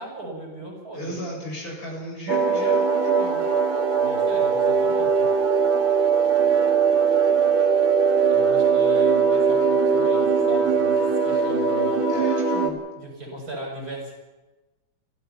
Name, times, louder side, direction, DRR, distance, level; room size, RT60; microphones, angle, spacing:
voice 1, 0.0-1.2 4.0-5.3 8.3-12.2 13.0-14.1, right 1 dB, 45° right, 0 dB, 7.5 m, -38 dB
voice 2, 0.9-3.4 12.1-12.8, equal, 45° left, -2 dB, 8.4 m, -35 dB
sound 1, 2.3-12.7, right 5 dB, 70° right, 3.3 m, -20 dB
28.5 x 17.0 x 5.8 m, 1.1 s
omnidirectional pair, 2.3 m